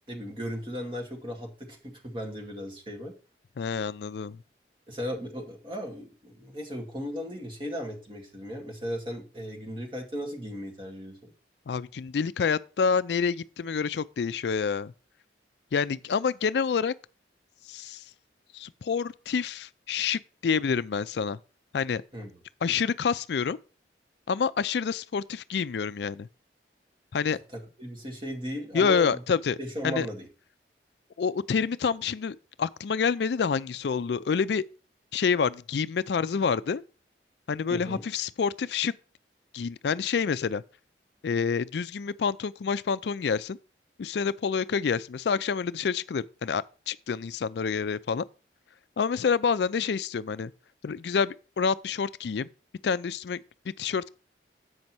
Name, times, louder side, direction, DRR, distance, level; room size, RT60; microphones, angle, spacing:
voice 1, 0.1-3.1 4.9-11.3 22.1-22.3 27.3-29.2 29.6-30.3 37.7-38.0, equal, 30° right, 2.1 m, -36 dB
voice 2, 3.6-4.4 11.7-14.9 15.7-16.9 17.7-18.0 18.5-21.4 21.7-22.0 22.6-23.6 24.3-26.3 27.1-27.4 28.7-29.6 29.8-30.1 31.2-34.6 35.1-36.8 37.5-38.9 39.5-40.6 41.2-43.6 44.0-48.2 49.0-50.5 50.8-52.5 52.8-53.4 53.8-54.1, left 6 dB, 70° left, 0.4 m, -28 dB
7.8 x 5.4 x 6.0 m
head